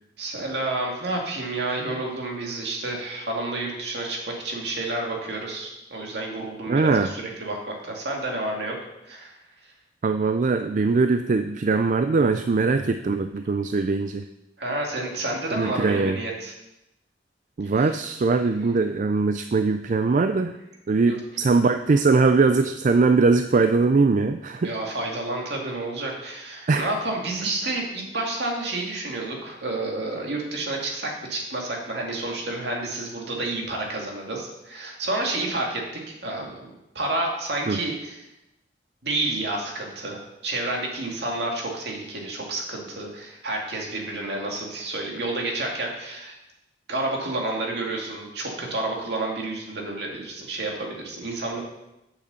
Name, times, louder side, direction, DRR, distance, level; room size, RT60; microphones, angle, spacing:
voice 1, 0.2-8.7 9.0-9.3 14.6-16.5 17.7-17.9 21.1-21.2 24.6-35.8 36.2-38.2 39.0-46.4 46.9-51.6, right 2 dB, 65° right, 0 dB, 2.3 m, -30 dB
voice 2, 6.7-7.1 10.0-14.2 15.5-16.2 17.6-20.6 20.9-24.7 26.7-26.9 37.7-37.8, right 4 dB, 45° right, 8 dB, 0.4 m, -21 dB
8.0 x 6.7 x 6.9 m, 0.91 s
head